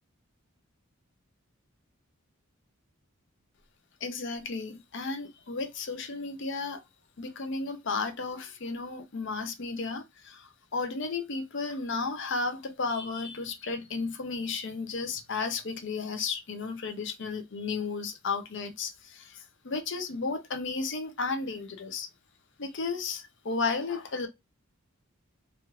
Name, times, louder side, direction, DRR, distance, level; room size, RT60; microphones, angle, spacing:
voice 1, 4.0-6.8 7.2-22.1 22.6-24.3, left 4 dB, 60° left, 0.7 m, -33 dB
3.2 x 2.4 x 3.0 m
head